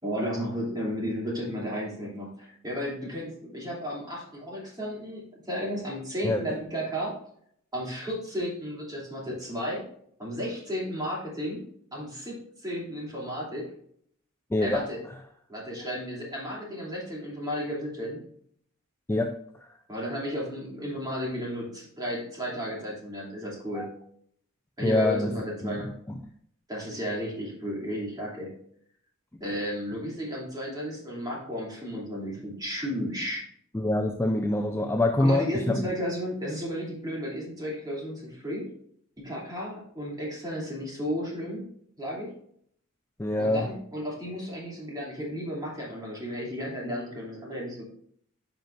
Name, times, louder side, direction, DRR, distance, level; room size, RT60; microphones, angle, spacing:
voice 1, 0.0-7.1 7.7-9.8 10.2-11.6 11.9-13.7 14.6-15.0 15.5-18.2 19.9-23.9 24.8-26.0 26.7-28.5 29.4-33.4 35.2-38.7 39.2-41.7 42.0-42.3 43.4-47.8, equal, 20° right, -4 dB, 2.8 m, -33 dB
voice 2, 14.5-14.8 15.9-16.0 19.1-19.3 23.7-23.9 24.8-25.3 25.6-25.9 33.7-35.8 43.2-43.7, left 1 dB, 10° left, 4 dB, 0.4 m, -25 dB
10.5 x 5.8 x 2.5 m, 0.66 s
head